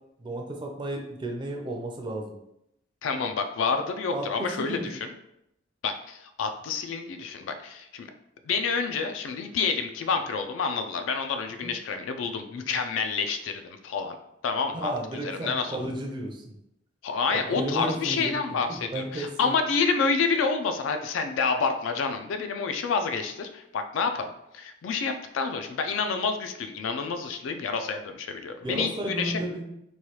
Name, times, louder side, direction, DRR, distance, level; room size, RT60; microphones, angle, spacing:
voice 1, 0.2-2.3 4.1-4.3 4.6-4.9 11.6-11.7 14.7-16.5 17.5-19.5 28.6-29.7, right 1 dB, 25° right, 2 dB, 0.4 m, -33 dB
voice 2, 3.0-5.1 5.8-8.1 8.5-14.1 14.4-14.9 15.2-15.8 17.0-24.3 24.5-29.4, left 5 dB, 90° left, 7 dB, 0.3 m, -28 dB
3.1 x 2.3 x 2.9 m, 0.81 s
head